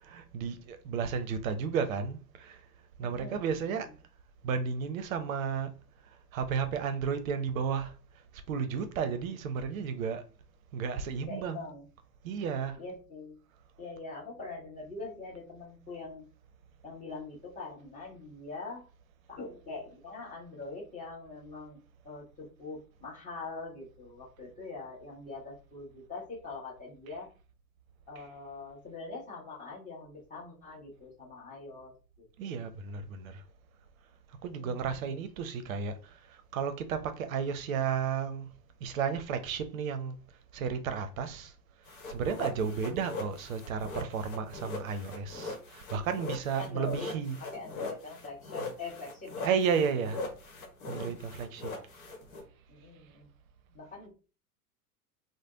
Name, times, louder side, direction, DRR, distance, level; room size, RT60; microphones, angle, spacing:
voice 1, 0.0-2.6 3.0-3.9 4.4-5.7 6.3-7.9 8.5-10.2 10.7-11.7 12.2-12.8 27.1-27.2 28.2-28.3 32.4-33.4 34.4-36.0 36.5-38.5 38.8-40.2 40.5-41.5 42.1-47.4 49.4-50.2 50.9-51.7, right 6 dB, 60° right, 0.6 m, -33 dB
voice 2, 3.0-3.9 11.2-11.9 12.8-13.4 13.8-16.2 16.8-18.9 19.3-21.8 22.0-27.3 28.1-31.9 32.4-32.6 34.6-35.1 42.4-42.7 46.5-47.1 47.4-49.5 52.7-53.3 53.7-54.1, left 3 dB, 15° left, 1.1 m, -43 dB
sound 1, 41.9-52.4, left 3 dB, 60° left, 1.0 m, -41 dB
3.1 x 2.0 x 2.4 m
figure-of-eight pair, 90°, 48 cm